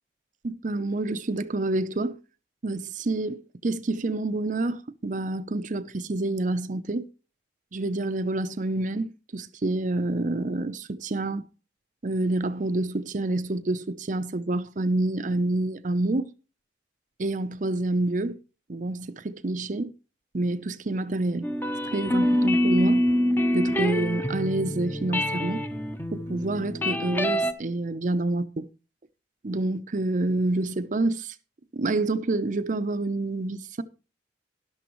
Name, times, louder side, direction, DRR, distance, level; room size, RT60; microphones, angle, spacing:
voice 1, 0.4-2.2 2.6-7.1 7.7-11.4 12.0-16.3 17.2-18.4 18.7-19.9 20.3-21.5 21.9-23.1 23.5-25.6 26.1-28.7 29.4-31.3 31.7-33.8, right 2 dB, 45° right, 0.6 m, -28 dB
sound 1, 21.4-27.5, left 1 dB, 10° left, 0.9 m, -25 dB
13.0 x 11.0 x 3.0 m
head